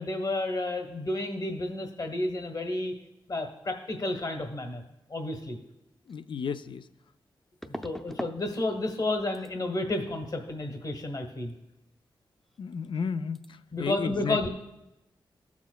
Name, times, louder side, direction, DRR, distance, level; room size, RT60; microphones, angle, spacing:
voice 1, 0.0-2.9 3.3-4.8 5.1-5.6 7.6-11.5 13.7-14.5, left 2 dB, 45° left, 5 dB, 1.2 m, -31 dB
voice 2, 6.1-6.8 12.6-13.4 13.8-14.5, left 6 dB, 65° left, 11 dB, 0.4 m, -32 dB
sound 1, 6.1-6.2 7.6-8.4 8.7-9.1 9.3-9.5 12.5-12.6 12.8-13.1 13.3-13.5, equal, 5° left, 0.6 m, -40 dB
16.0 x 7.1 x 2.3 m, 0.92 s
cardioid pair, 70°, 9 cm